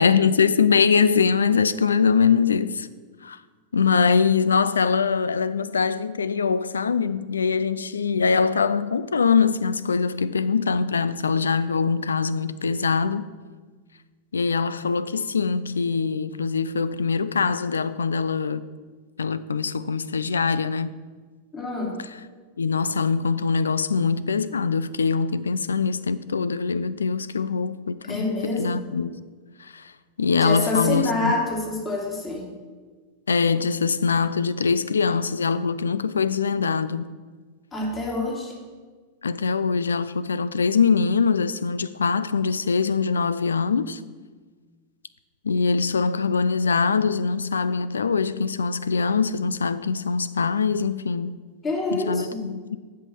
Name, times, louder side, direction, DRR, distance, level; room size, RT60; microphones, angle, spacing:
voice 1, 0.0-2.9 3.2-3.4 3.7-13.3 14.3-18.7 19.2-20.9 22.0-22.2 22.6-29.2 29.6-29.9 30.2-31.4 33.3-37.1 39.2-44.0 45.4-51.4 51.9-52.8, left 5 dB, 90° left, 0.4 m, -23 dB
voice 2, 21.5-21.9 28.0-28.8 30.4-32.5 37.7-38.5 51.6-52.4, left 2 dB, 25° left, 2.7 m, -27 dB
8.0 x 5.8 x 7.6 m
hypercardioid pair, 100°, 0 cm